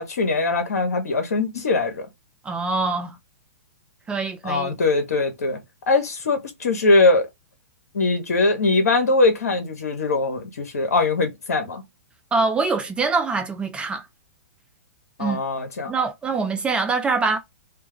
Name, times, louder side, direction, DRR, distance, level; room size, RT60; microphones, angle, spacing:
voice 1, 0.0-2.1 4.4-5.6 5.9-7.3 7.9-11.8 15.2-15.9, left 3 dB, 80° left, 0.8 m, -21 dB
voice 2, 2.4-3.2 4.1-4.7 12.3-14.1 15.2-15.4 15.9-17.4, right 4 dB, 10° right, 0.4 m, -24 dB
2.3 x 2.1 x 2.9 m
hypercardioid pair, 120°, 8 cm